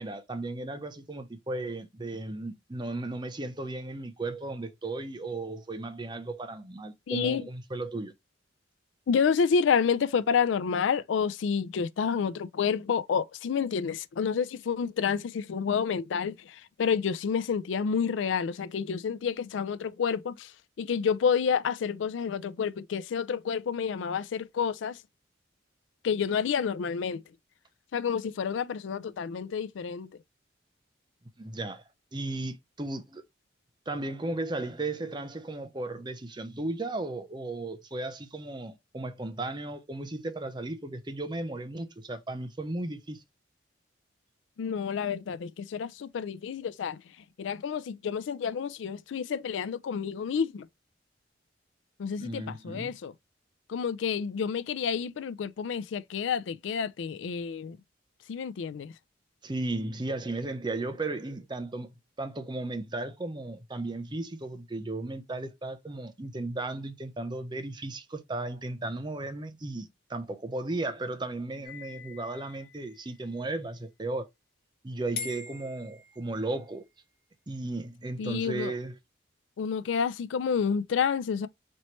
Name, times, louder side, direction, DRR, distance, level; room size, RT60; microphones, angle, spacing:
voice 1, 0.0-8.1 31.4-31.8 32.1-33.2 33.9-43.2 52.2-52.9 59.4-61.9 62.2-74.3 74.8-76.9 77.5-79.0, right 2 dB, 25° right, 0.6 m, -35 dB
voice 2, 7.1-7.5 9.1-20.5 20.8-25.0 26.0-27.2 27.9-30.1 44.6-47.0 47.4-50.7 52.0-53.1 53.7-57.8 58.3-58.9 78.2-78.7 79.6-81.5, left 6 dB, 85° left, 0.4 m, -29 dB
sound 1, 71.6-73.2 75.2-76.7, left 6 dB, 55° left, 1.7 m, -43 dB
4.3 x 3.1 x 3.1 m
head